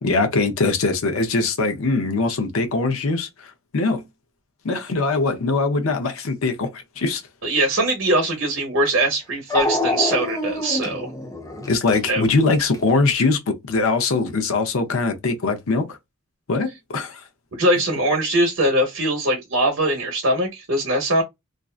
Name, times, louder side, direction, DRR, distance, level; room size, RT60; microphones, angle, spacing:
voice 1, 0.0-4.0 4.6-7.2 11.7-16.0 16.5-17.2, left 3 dB, 80° left, 0.6 m, -22 dB
voice 2, 7.4-11.1 12.1-12.2 17.5-21.2, right 1 dB, 60° right, 0.8 m, -21 dB
Dog, 8.4-8.5 9.5-12.9, left 1 dB, 15° left, 0.5 m, -26 dB
2.5 x 2.2 x 2.3 m
head